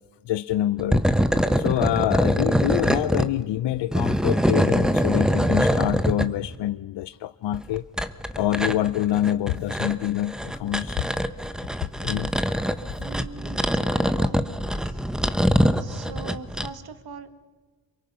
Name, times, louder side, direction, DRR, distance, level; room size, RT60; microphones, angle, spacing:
voice 1, 0.3-1.0 1.6-7.8 8.3-11.2 12.0-12.3, left 13 dB, 75° left, 0.6 m, -26 dB
sound 1, 0.8-3.3 3.7-6.3 7.5-16.7, equal, ahead, 1.2 m, -23 dB
voice 2, 13.0-14.5 14.8-15.0 15.8-17.3, right 5 dB, 60° right, 1.9 m, -41 dB
30.0 x 23.0 x 5.6 m
cardioid pair, 85°, 42 cm